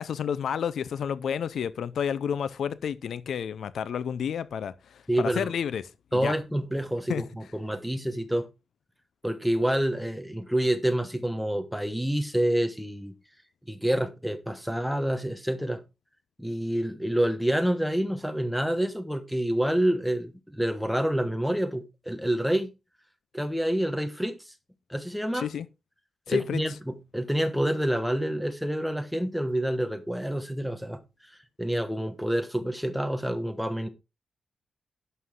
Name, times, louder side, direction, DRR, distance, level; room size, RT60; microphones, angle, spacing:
voice 1, 0.0-5.9 6.1-6.3 7.1-7.2 25.3-25.7 26.3-26.6, left 8 dB, 65° left, 0.6 m, -30 dB
voice 2, 5.1-5.5 6.1-8.5 9.2-13.1 13.7-15.8 16.4-22.7 23.3-24.4 24.9-25.5 26.3-31.0 31.6-33.9, right 1 dB, ahead, 1.2 m, -27 dB
11.0 x 7.8 x 3.7 m
wide cardioid pair, 180°, 0 cm